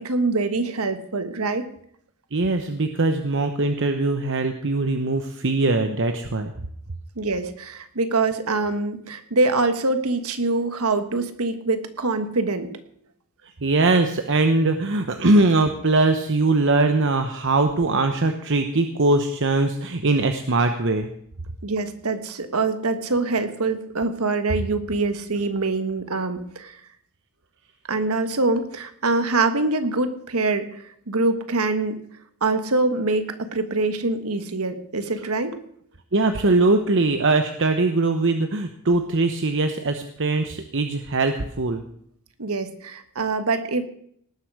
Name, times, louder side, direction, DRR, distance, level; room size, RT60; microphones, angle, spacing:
voice 1, 0.0-1.6 7.1-12.7 21.6-26.8 27.9-32.0 32.4-35.6 42.4-43.9, right 3 dB, 80° right, 9 dB, 1.5 m, -24 dB
voice 2, 2.3-6.5 13.6-21.1 36.1-41.8, right 2 dB, 60° right, 6 dB, 0.9 m, -21 dB
18.5 x 8.2 x 6.3 m, 0.66 s
head